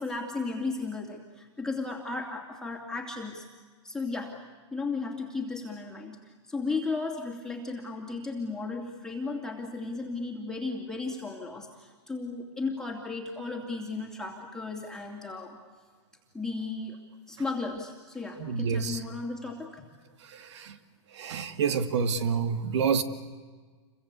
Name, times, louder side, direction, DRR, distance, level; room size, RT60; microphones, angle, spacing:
voice 1, 0.0-3.5 3.8-4.4 4.7-15.6 16.3-17.0 17.3-19.9, left 3 dB, 5° left, -1 dB, 2.7 m, -35 dB
voice 2, 18.4-19.0 20.2-20.8 21.1-23.0, right 6 dB, 70° right, 11 dB, 2.2 m, -28 dB
29.0 x 24.0 x 8.3 m, 1.4 s
hypercardioid pair, 135°, 15 cm